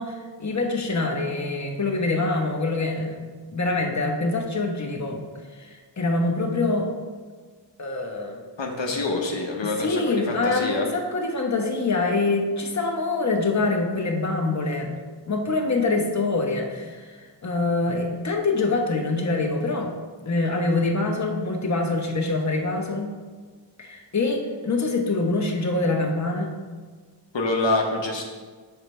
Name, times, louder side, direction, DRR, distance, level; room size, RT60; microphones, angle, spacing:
voice 1, 0.0-5.2 5.5-6.9 7.8-8.4 8.9-9.0 9.6-15.0 15.3-19.9 20.3-23.1 23.8-26.5, left 3 dB, 40° left, 1 dB, 1.0 m, -25 dB
voice 2, 8.6-10.8 27.3-28.2, left 2 dB, 80° left, 1 dB, 0.9 m, -26 dB
5.0 x 4.5 x 6.1 m, 1.5 s
wide cardioid pair, 50°, 44 cm